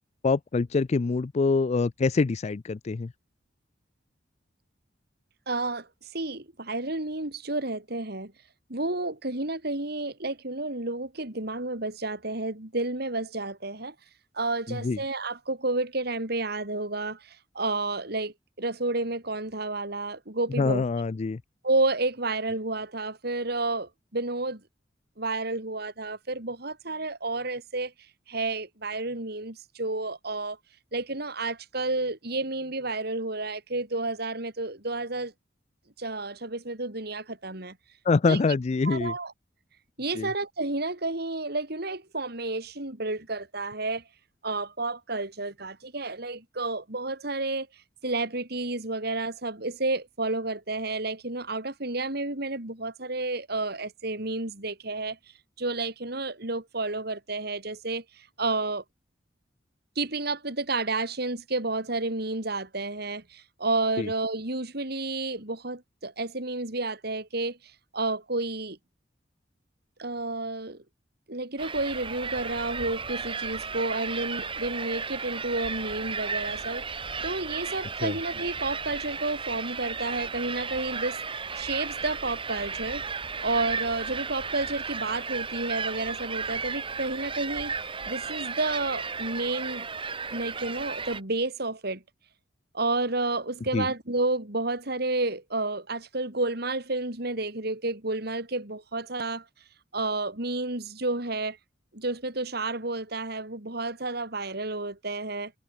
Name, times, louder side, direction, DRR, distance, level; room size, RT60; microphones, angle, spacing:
voice 1, 0.0-3.1 14.7-15.0 20.6-21.4 38.1-39.1 40.1-40.3 64.0-64.1 78.0-78.2 93.7-93.9, left 4 dB, 35° left, 0.4 m, -25 dB
voice 2, 5.5-5.9 6.1-8.3 8.7-13.9 14.3-20.8 21.6-24.6 25.2-27.9 28.3-30.6 30.9-35.3 36.0-37.8 38.3-38.4 38.8-39.3 40.0-44.0 44.4-47.7 48.0-55.2 55.6-58.8 60.0-67.6 67.9-68.8 70.0-70.8 71.3-76.8 77.2-83.0 83.4-89.9 90.3-92.0 92.7-99.4 99.9-101.6 101.9-105.5, right 2 dB, 60° right, 4.0 m, -31 dB
sound 1, 71.6-91.2, right 5 dB, 30° right, 2.0 m, -34 dB
head